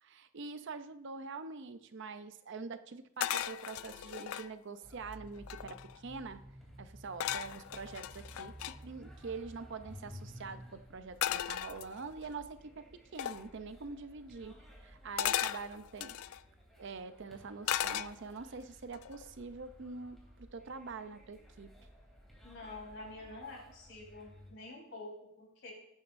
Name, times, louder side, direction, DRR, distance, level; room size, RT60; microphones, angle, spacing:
voice 1, 0.0-6.4 6.8-16.2 16.8-21.7, right 4 dB, 55° right, 10 dB, 0.6 m, -45 dB
sound 1, 3.2-4.5 5.1-5.2 5.4-6.0 7.2-8.8 11.2-12.3 13.2-13.5 15.2-16.4 17.7-18.5 18.9-19.3, left 11 dB, 75° left, 0.3 m, -36 dB
sound 2, 4.8-24.5, equal, ahead, 3.1 m, -55 dB
voice 2, 22.4-25.7, left 2 dB, 60° left, -2 dB, 4.3 m, -48 dB
18.0 x 9.4 x 2.6 m, 0.79 s
head